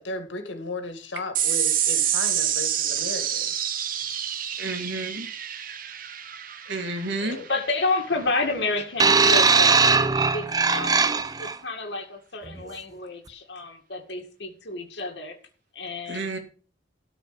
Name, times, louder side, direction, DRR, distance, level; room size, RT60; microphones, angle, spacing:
voice 1, 0.0-3.5 7.2-7.5, left 2 dB, 80° left, 2.2 m, -35 dB
sound 1, 1.3-8.1, right 10 dB, 50° right, 1.0 m, -28 dB
voice 2, 4.6-5.3 6.6-7.4 16.1-16.4, right 2 dB, 65° right, 2.3 m, -31 dB
voice 3, 7.5-15.4 15.7-16.3, left 3 dB, 65° left, 2.0 m, -30 dB
sound 2, 9.0-11.5 12.5-12.6, right 4 dB, 20° right, 0.6 m, -19 dB
13.0 x 4.9 x 6.8 m
head